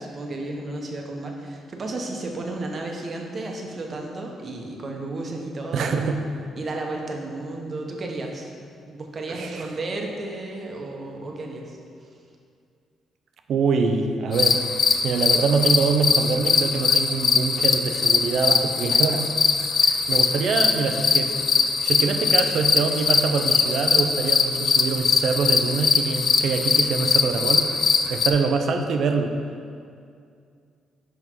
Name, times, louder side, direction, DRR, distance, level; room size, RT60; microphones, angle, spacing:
voice 1, 0.0-6.1 6.6-8.5 8.9-11.8, right 2 dB, 45° right, 1 dB, 1.0 m, -33 dB
voice 2, 5.7-6.2 9.3-9.7 13.5-14.6 15.0-19.6 20.1-21.3 21.8-27.7 28.1-29.3, right 4 dB, 70° right, 5 dB, 0.6 m, -24 dB
sound 1, 14.3-28.3, left 5 dB, 50° left, 0.4 m, -21 dB
6.0 x 5.2 x 4.6 m, 2.3 s
cardioid pair, 90°, 0 cm